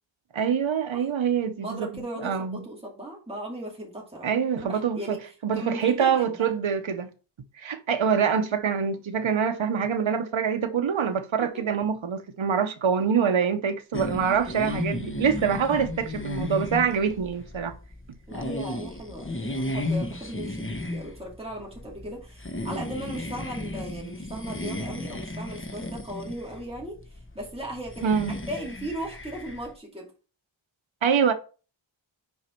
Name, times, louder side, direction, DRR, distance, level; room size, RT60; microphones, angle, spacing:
voice 1, 0.3-2.7 4.2-5.2 5.4-7.1 7.6-17.7 28.0-28.3 31.0-31.3, right 7 dB, 70° right, 0.8 m, -25 dB
voice 2, 1.6-4.3 4.6-5.2 5.5-6.5 18.3-30.1, right 1 dB, 10° right, 2.4 m, -37 dB
sound 1, 13.9-29.7, left 1 dB, 25° left, 1.0 m, -34 dB
6.2 x 5.1 x 4.4 m
wide cardioid pair, 45°, 48 cm